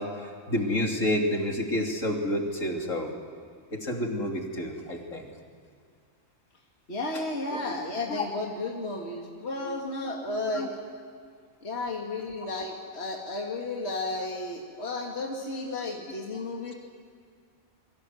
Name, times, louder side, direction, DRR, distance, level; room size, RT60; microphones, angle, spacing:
voice 1, 0.0-3.1 3.7-5.3 7.5-7.7 8.1-8.2 9.7-9.8 10.5-10.7, left 1 dB, 65° left, 1 dB, 3.6 m, -29 dB
voice 2, 6.9-10.7 11.6-16.7, left 2 dB, 50° left, -1 dB, 2.6 m, -33 dB
29.0 x 23.5 x 7.9 m, 2.3 s
omnidirectional pair, 1.4 m